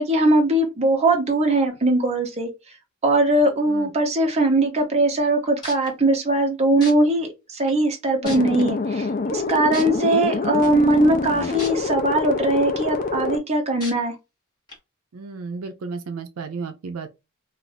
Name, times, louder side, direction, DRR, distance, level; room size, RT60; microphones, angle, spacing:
voice 1, 0.0-2.5 3.0-14.1, right 1 dB, 30° right, 0.8 m, -20 dB
sound 1, 5.3-5.4 5.6-5.9 6.8-6.9 7.7-7.8 8.2-8.6 9.7-9.8 11.6-11.7 12.2-12.3 13.8-13.9 14.7-14.8, left 2 dB, 20° left, 1.3 m, -34 dB
sound 2, 8.2-13.4, left 3 dB, 40° left, 0.5 m, -26 dB
voice 2, 15.1-17.1, right 4 dB, 80° right, 0.4 m, -33 dB
2.5 x 2.4 x 3.3 m
head